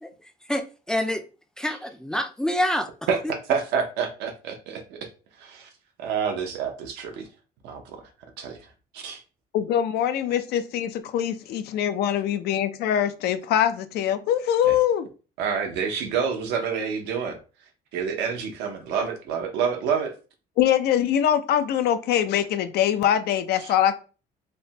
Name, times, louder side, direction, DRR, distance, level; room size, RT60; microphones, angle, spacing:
voice 1, 0.5-1.2 1.6-2.9, left 1 dB, 5° left, 0.3 m, -26 dB
voice 2, 3.1-5.1 5.4-5.7 6.0-7.3 7.6-8.0 8.4-9.2 14.6-14.8 15.4-17.4 17.9-20.1 23.6-23.7, right 6 dB, 85° right, 0.7 m, -28 dB
voice 3, 9.5-15.1 20.6-23.9, left 10 dB, 75° left, 0.4 m, -23 dB
3.3 x 2.1 x 2.7 m
cardioid pair, 110°, 17 cm